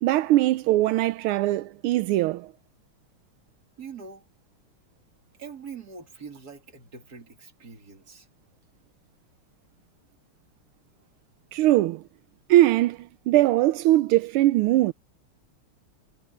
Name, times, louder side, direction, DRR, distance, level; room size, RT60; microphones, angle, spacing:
voice 1, 0.0-2.5 11.5-12.0 12.5-13.0 13.3-14.9, right 15 dB, 85° right, 1.5 m, -21 dB
voice 2, 3.8-4.2 5.4-8.3, right 5 dB, 45° right, 2.9 m, -43 dB
omnidirectional pair, 2.4 m